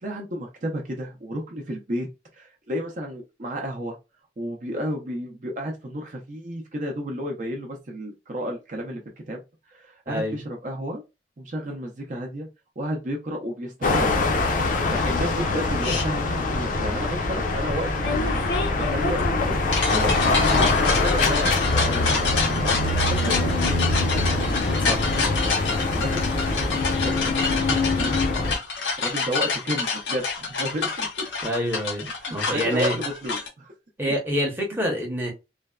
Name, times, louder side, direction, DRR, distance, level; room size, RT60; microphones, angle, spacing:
voice 1, 0.0-4.0 4.4-9.0 9.3-9.4 9.7-11.0 11.4-12.5 12.8-14.1 14.7-24.0 25.9-26.7 27.0-28.2 29.0-31.2 32.2-33.7 34.0-34.1, equal, 45° right, 0 dB, 0.6 m, -32 dB
voice 2, 10.1-10.4 24.9-25.0 31.4-33.0 34.0-35.3, equal, 10° right, 0 dB, 0.8 m, -27 dB
sound 1, 13.8-28.5, left 2 dB, 50° left, 0.5 m, -23 dB
sound 2, 15.8-16.0 18.0-33.5, left 4 dB, 90° left, 0.9 m, -28 dB
3.3 x 2.1 x 2.3 m, 0.25 s
head